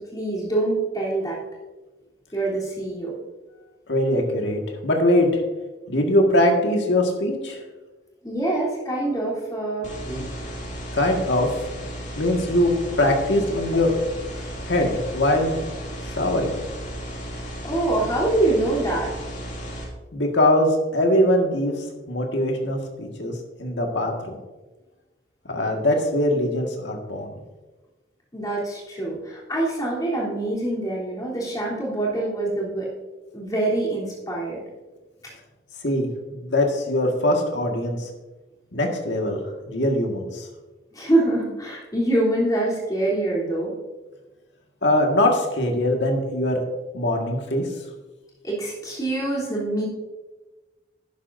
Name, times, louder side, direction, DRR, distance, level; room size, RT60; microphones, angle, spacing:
voice 1, 0.0-1.4 2.3-3.1 8.2-10.4 14.4-14.5 17.6-19.3 28.3-32.9 33.3-34.6 40.9-43.7 48.4-49.9, right 2 dB, 20° left, -5 dB, 3.3 m, -25 dB
voice 2, 3.9-5.4 5.9-7.6 10.9-11.5 12.2-13.9 14.7-15.6 16.0-16.6 20.1-21.7 22.1-24.4 25.5-27.3 35.8-38.1 38.7-39.4 39.7-40.5 44.8-46.6 46.9-47.7, left 1 dB, 80° left, 2 dB, 1.8 m, -22 dB
sound 1, 9.8-19.8, equal, 45° left, 2.4 m, -34 dB
11.5 x 10.5 x 2.6 m, 1.2 s
head